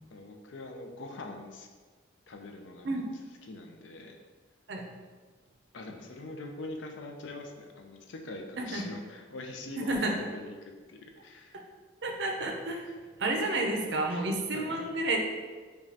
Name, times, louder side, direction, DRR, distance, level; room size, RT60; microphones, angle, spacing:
voice 1, 0.1-1.7 2.3-3.0 3.4-4.2 5.7-11.6 12.9-13.0 14.1-14.3 14.5-14.7, left 2 dB, 70° left, 3 dB, 0.5 m, -43 dB
voice 2, 9.8-10.1 12.0-12.9 13.2-15.2, right 2 dB, 60° right, 2 dB, 0.5 m, -30 dB
4.9 x 2.3 x 2.7 m, 1.5 s
head